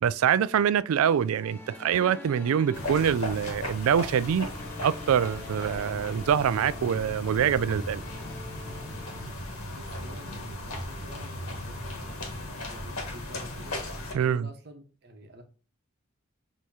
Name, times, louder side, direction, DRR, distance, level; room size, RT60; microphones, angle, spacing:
voice 1, 0.0-4.5 4.8-8.0 14.1-14.5, right 8 dB, 75° right, 0.3 m, -25 dB
sound 1, 1.0-9.2, left 3 dB, 10° left, 0.8 m, -46 dB
sound 2, 2.7-14.1, left 1 dB, 85° left, 1.3 m, -37 dB
voice 2, 9.8-13.8 14.1-15.4, equal, 50° right, 1.0 m, -48 dB
6.4 x 3.0 x 2.7 m
head